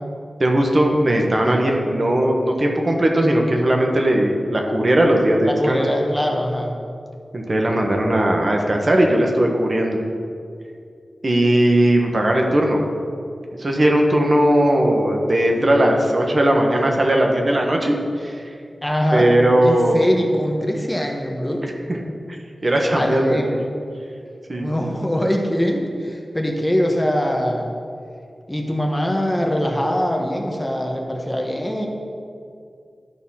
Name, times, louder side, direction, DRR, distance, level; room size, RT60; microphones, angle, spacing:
voice 1, 0.4-5.8 7.3-10.0 11.2-12.8 13.6-18.5 19.1-20.1 22.6-23.4 24.5-24.7, right 1 dB, 45° right, 1 dB, 1.2 m, -18 dB
voice 2, 5.4-6.7 18.8-19.3 19.6-21.7 22.9-23.6 24.5-27.7 28.5-31.9, equal, 10° left, 1 dB, 1.1 m, -22 dB
12.0 x 4.1 x 5.6 m, 2.4 s
wide cardioid pair, 70°, 0 cm